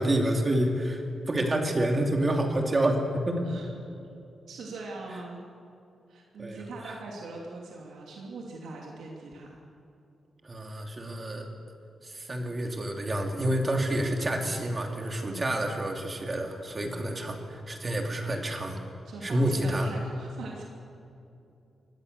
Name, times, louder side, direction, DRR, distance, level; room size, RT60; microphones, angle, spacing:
voice 1, 0.0-3.4 6.4-6.9 10.4-11.5 12.0-18.8 19.2-19.9, right 1 dB, 25° right, 2 dB, 2.8 m, -28 dB
voice 2, 4.5-5.4 6.1-9.6 15.2-15.6 16.7-17.0 19.0-20.6, right 3 dB, 90° right, -2 dB, 2.8 m, -41 dB
24.0 x 19.0 x 6.9 m, 2.7 s
wide cardioid pair, 135°, 0 cm